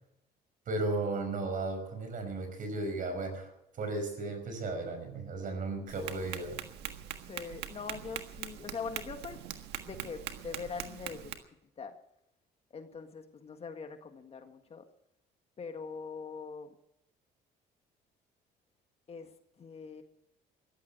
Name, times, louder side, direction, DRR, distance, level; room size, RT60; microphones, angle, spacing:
voice 1, 0.7-6.6, right 2 dB, 50° right, 7 dB, 5.6 m, -35 dB
Tap, 5.9-11.4, right 11 dB, 80° right, 1.6 m, -42 dB
voice 2, 7.3-9.4 9.8-11.3 11.8-11.9 12.7-14.8 15.6-16.8 19.1-19.3 19.6-20.0, left 5 dB, 35° left, 6 dB, 1.8 m, -42 dB
15.0 x 12.0 x 7.8 m, 0.80 s
cardioid pair, 110°, 17 cm